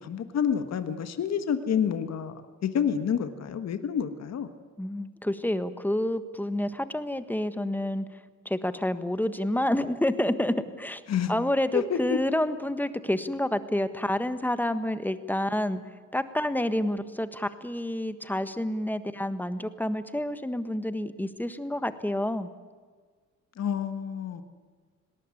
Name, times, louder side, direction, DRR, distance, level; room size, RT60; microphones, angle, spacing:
voice 1, 0.0-4.5 11.1-11.3 11.7-12.2 23.6-24.4, left 8 dB, 60° left, 9 dB, 1.6 m, -28 dB
voice 2, 4.8-8.0 8.4-11.0 11.3-15.8 16.1-22.5, left 1 dB, 5° left, 11 dB, 1.4 m, -28 dB
19.0 x 18.5 x 9.9 m, 1.5 s
cardioid pair, 90°, 30 cm